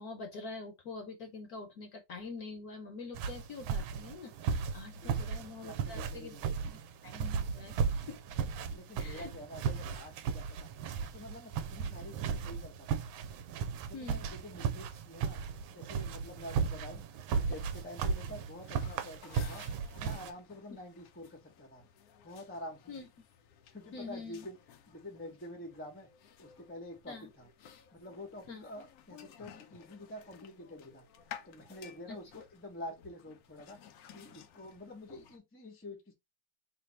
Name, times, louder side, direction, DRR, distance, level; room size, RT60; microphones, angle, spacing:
voice 1, 0.0-6.4 6.7-7.7 8.1-8.2 9.0-9.3 13.9-14.2 22.9-23.1 23.9-24.5 27.1-27.3 28.5-28.6 32.1-32.2, left 4 dB, 60° left, 1.1 m, -45 dB
sound 1, 3.1-20.3, right 6 dB, 80° right, 1.3 m, -36 dB
voice 2, 5.6-6.7 8.7-10.7 11.1-13.0 13.8-15.4 15.7-17.0 17.3-19.6 19.9-21.8 22.2-23.0 23.6-24.6 24.9-26.1 26.4-27.5 27.9-31.1 31.4-33.8 34.1-36.1, left 1 dB, 15° left, 0.5 m, -47 dB
sound 2, 17.3-35.4, left 9 dB, 80° left, 0.8 m, -55 dB
3.3 x 2.8 x 4.2 m
omnidirectional pair, 2.3 m